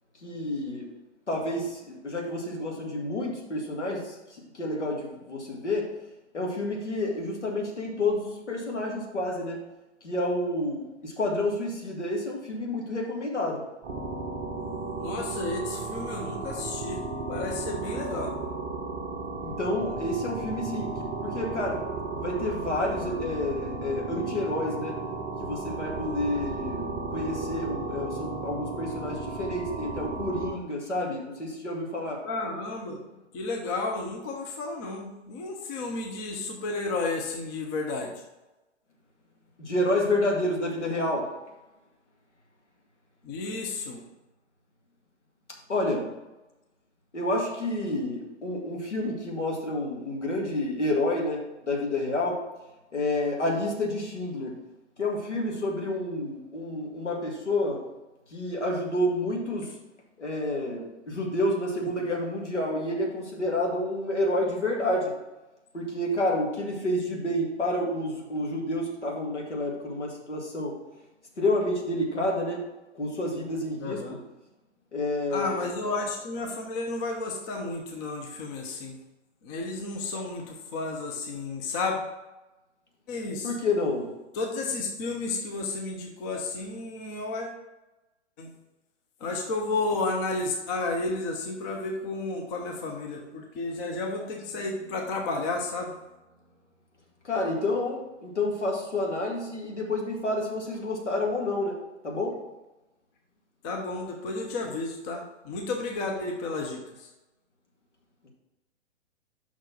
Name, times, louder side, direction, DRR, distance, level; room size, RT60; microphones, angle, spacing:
voice 1, 0.2-0.9 1.3-5.9 6.3-9.6 10.0-13.6 19.4-20.9 21.2-21.8 22.2-25.0 25.4-32.2 39.6-41.3 45.7-46.1 47.1-52.4 52.9-54.5 55.0-57.8 58.3-59.7 60.2-65.1 65.7-70.8 71.4-72.6 72.9-74.0 74.9-75.9 83.4-84.1 97.2-101.7 102.0-102.4 108.2-108.3, left 1 dB, 75° left, -1 dB, 2.1 m, -29 dB
sound 1, 13.8-30.5, right 3 dB, 20° right, 0.8 m, -34 dB
voice 2, 15.0-17.0 17.3-18.4 25.9-26.3 32.2-33.1 33.3-38.1 43.2-44.0 73.8-74.2 75.3-79.0 79.4-82.0 83.1-83.5 84.3-87.6 88.4-88.5 89.2-95.9 103.6-107.1, left 3 dB, 15° left, 2 dB, 0.5 m, -32 dB
5.7 x 4.5 x 5.8 m, 1.0 s
figure-of-eight pair, 120°, 35 cm